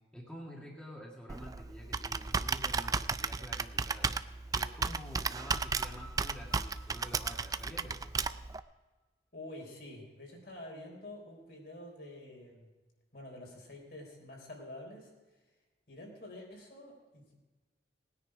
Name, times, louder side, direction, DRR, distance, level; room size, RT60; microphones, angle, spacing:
voice 1, 0.1-4.1 4.5-8.1, equal, 5° left, -3 dB, 1.8 m, -49 dB
Computer keyboard, 1.3-8.6, right 4 dB, 20° right, 0.3 m, -34 dB
sound 1, 5.5-8.6, equal, 20° left, 2.3 m, -52 dB
voice 2, 9.3-12.7 13.1-15.1 15.9-17.4, left 1 dB, 60° left, 0 dB, 4.0 m, -48 dB
19.5 x 9.9 x 4.9 m, 1.2 s
head